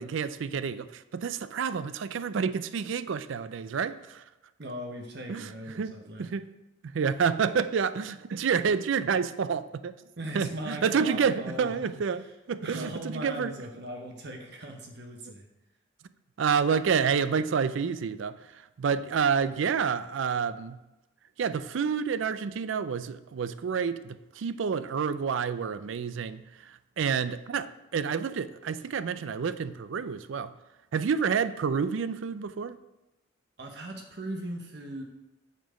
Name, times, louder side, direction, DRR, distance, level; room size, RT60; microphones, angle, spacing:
voice 1, 0.0-4.2 5.3-5.5 5.8-5.9 6.2-6.5 6.8-10.0 10.3-13.5 16.4-20.8 21.4-30.5 30.9-32.8, right 6 dB, 70° right, 14 dB, 0.4 m, -29 dB
voice 2, 4.6-6.3 10.2-11.9 12.1-12.3 12.6-15.5 33.6-35.0, right 1 dB, 55° right, 2 dB, 0.9 m, -39 dB
9.2 x 4.4 x 5.0 m, 0.99 s
head